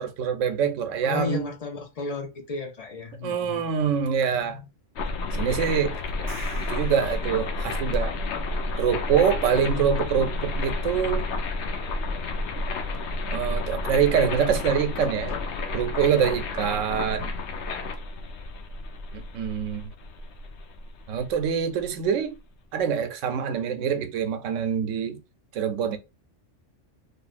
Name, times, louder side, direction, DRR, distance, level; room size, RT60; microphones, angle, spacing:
voice 1, 0.0-1.5 3.2-4.6 5.3-6.3 6.7-8.2 8.8-11.3 13.3-15.4 15.7-17.3 19.1-19.9 21.1-22.4 22.7-25.2 25.5-26.0, right 7 dB, 85° right, 0.9 m, -25 dB
voice 2, 1.0-3.6 9.5-10.0 17.7-17.8, left 4 dB, 50° left, 0.4 m, -33 dB
sound 1, 5.0-21.9, left 2 dB, 70° left, 0.8 m, -31 dB
sound 2, 6.1-8.0, equal, 30° right, 1.0 m, -43 dB
3.4 x 2.5 x 2.4 m
omnidirectional pair, 1.3 m